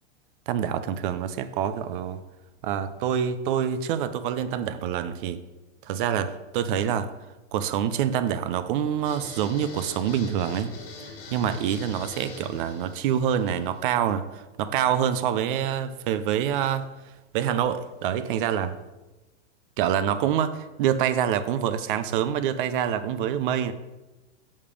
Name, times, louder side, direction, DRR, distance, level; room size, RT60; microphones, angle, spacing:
voice 1, 0.5-2.2 2.6-5.4 5.9-7.1 7.5-10.7 11.3-16.9 17.3-18.8 19.8-23.7, right 9 dB, 45° right, 12 dB, 0.5 m, -26 dB
sound 1, 9.0-14.0, left 3 dB, 55° left, 1.9 m, -43 dB
6.7 x 5.4 x 5.1 m, 1.1 s
supercardioid pair, 160°, 36 cm